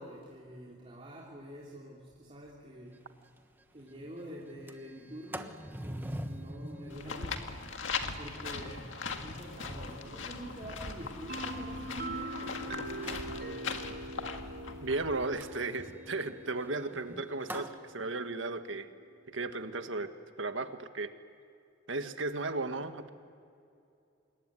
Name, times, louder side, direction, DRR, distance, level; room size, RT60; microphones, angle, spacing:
voice 1, 0.0-2.9 3.7-7.5 7.9-13.8 15.0-15.1, equal, 35° right, -4 dB, 3.3 m, -47 dB
Sliding door, 2.9-3.0 3.4-3.5 3.8-4.1 4.5-12.5 12.9-13.4 15.4-17.8, right 1 dB, 10° right, 1.2 m, -46 dB
sound 1, 6.9-15.2, left 4 dB, 80° left, 2.0 m, -40 dB
sound 2, 11.3-18.9, right 2 dB, 55° right, 1.8 m, -43 dB
voice 2, 14.8-18.9 19.3-20.1 20.4-21.1 21.9-23.1, right 3 dB, 80° right, 8 dB, 1.6 m, -35 dB
26.5 x 22.0 x 9.7 m, 2.5 s
head